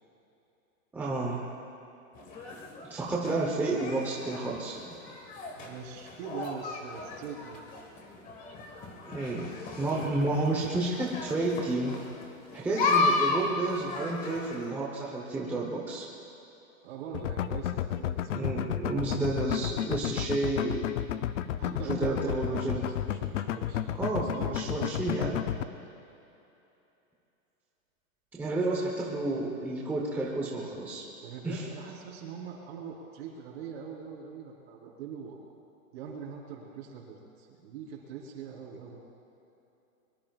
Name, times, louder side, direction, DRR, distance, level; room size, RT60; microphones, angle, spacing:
voice 1, 0.9-1.5 2.9-4.8 9.1-9.5 9.8-12.0 12.5-16.1 18.3-20.9 21.3-22.9 24.0-25.4 28.3-31.0 31.4-31.6, right 2 dB, 5° right, -3 dB, 0.8 m, -31 dB
sound 1, 2.1-14.7, left 3 dB, 20° left, 1.5 m, -34 dB
voice 2, 5.5-7.6 16.8-19.3 21.6-24.9 25.4-25.7 28.4-28.7 31.2-35.4 35.9-39.0, right 6 dB, 45° right, -2 dB, 3.9 m, -43 dB
sound 2, 17.1-25.6, left 11 dB, 60° left, 0.7 m, -32 dB
23.5 x 23.0 x 2.4 m, 2.9 s
hypercardioid pair, 160°, 42 cm